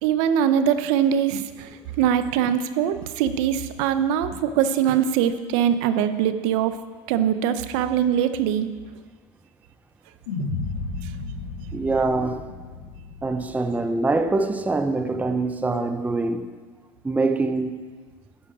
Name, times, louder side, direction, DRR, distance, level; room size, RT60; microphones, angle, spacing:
voice 1, 0.0-1.7 2.0-6.8 7.1-8.7, right 9 dB, 65° right, 0.8 m, -22 dB
sound 1, 10.3-14.6, left 3 dB, 80° left, 2.6 m, -33 dB
voice 2, 11.7-12.5 13.2-16.6 17.0-17.8, right 3 dB, 10° right, 0.6 m, -24 dB
11.5 x 10.0 x 4.8 m
supercardioid pair, 110°, 17 cm